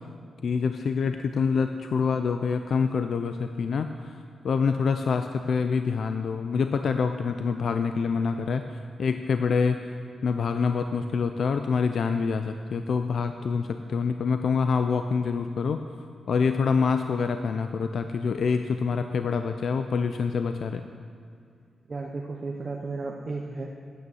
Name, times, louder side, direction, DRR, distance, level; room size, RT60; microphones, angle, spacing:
voice 1, 0.4-9.8 10.2-15.8 16.3-20.8, left 5 dB, 60° left, 8 dB, 0.4 m, -26 dB
voice 2, 21.9-23.7, right 3 dB, 30° right, 0 dB, 0.7 m, -34 dB
9.4 x 8.5 x 7.1 m, 2.4 s
wide cardioid pair, 160°, 0 cm